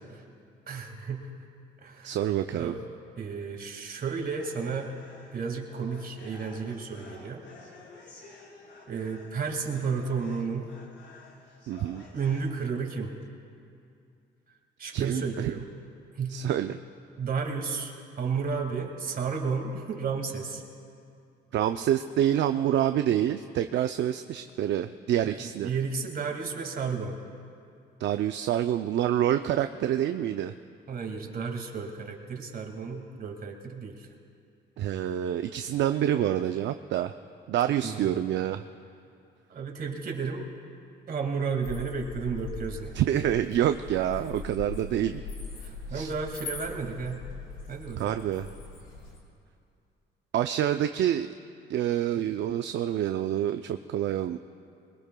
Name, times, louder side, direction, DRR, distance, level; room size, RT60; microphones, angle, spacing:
voice 1, 0.7-1.3 1.8-2.2 2.5-2.8 3.2-4.9 5.3-7.4 8.9-10.7 12.1-13.1 14.8-15.7 16.2-16.4 17.2-17.9 18.2-20.6 25.4-27.2 30.9-34.1 37.8-38.1 39.5-40.5 41.1-42.9 45.6-47.2 47.7-48.2 52.2-52.3, right 5 dB, 50° right, 3 dB, 2.1 m, -32 dB
voice 2, 2.0-2.7 11.7-12.0 14.9-15.5 16.3-16.8 21.5-25.7 28.0-30.5 34.8-37.1 37.5-38.6 42.9-45.2 45.9-46.1 48.0-48.5 50.3-51.3 51.7-54.4, right 11 dB, 65° right, 8 dB, 0.5 m, -27 dB
sound 1, 4.4-12.4, left 3 dB, 65° left, 4.1 m, -51 dB
sound 2, 41.6-49.2, left 3 dB, 85° left, 3.5 m, -41 dB
21.5 x 21.0 x 2.3 m, 2.5 s
cardioid pair, 90°, 20 cm